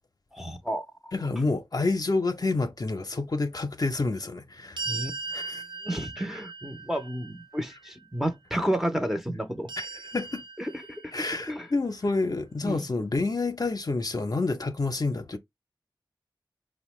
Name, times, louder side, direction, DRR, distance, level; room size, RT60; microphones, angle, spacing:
voice 1, 0.3-0.9 4.9-5.1 5.8-9.7 10.6-11.7 12.6-12.9, equal, 5° right, 0.6 m, -31 dB
voice 2, 1.1-4.8 5.3-5.6 10.1-10.4 11.1-15.4, left 3 dB, 50° left, 0.6 m, -28 dB
sound 1, 4.8-7.9 9.7-11.4, right 4 dB, 70° right, 0.5 m, -38 dB
5.0 x 2.1 x 3.0 m
wide cardioid pair, 65°, 8 cm